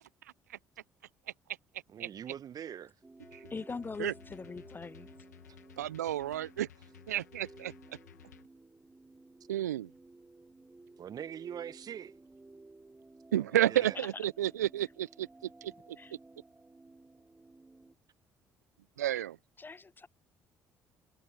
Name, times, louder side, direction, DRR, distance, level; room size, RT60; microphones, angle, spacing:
voice 1, 1.9-2.9 11.0-12.2 13.4-14.0, right 9 dB, 45° right, 1.1 m, -43 dB
sound 1, 3.0-17.9, right 2 dB, 20° right, 6.9 m, -56 dB
sound 2, 3.2-8.5, left 9 dB, 85° left, 1.5 m, -56 dB
voice 2, 3.5-5.1 14.0-14.1 16.0-16.1 19.6-20.1, left 4 dB, 25° left, 0.6 m, -41 dB
voice 3, 5.8-6.7 7.1-7.7 9.5-9.9 13.3-15.3 15.6-15.7 19.0-19.4, right 12 dB, 80° right, 0.6 m, -31 dB
figure-of-eight pair, 50°, 9 cm